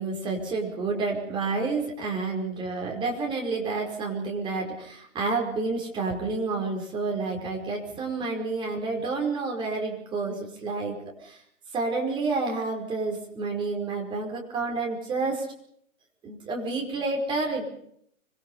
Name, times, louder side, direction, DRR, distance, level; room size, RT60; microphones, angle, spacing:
voice 1, 0.0-11.4 11.7-15.5 16.2-17.7, right 3 dB, 10° right, 0 dB, 5.0 m, -29 dB
26.0 x 22.5 x 5.7 m, 0.69 s
hypercardioid pair, 155°, 42 cm